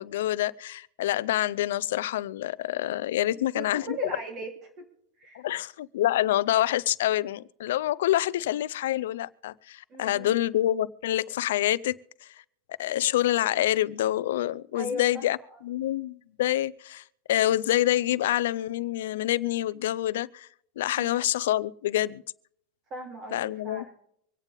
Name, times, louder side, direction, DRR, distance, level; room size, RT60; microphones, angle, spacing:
voice 1, 0.0-3.9 5.3-12.3 12.8-15.4 15.6-20.5 20.8-22.2 23.3-23.9, left 13 dB, 85° left, 0.6 m, -27 dB
voice 2, 3.5-4.8 5.2-5.5 9.9-10.4 14.7-15.6 20.9-21.1 22.9-23.9, equal, 35° right, 3.3 m, -39 dB
25.5 x 9.0 x 3.6 m
supercardioid pair, 145°, 0 cm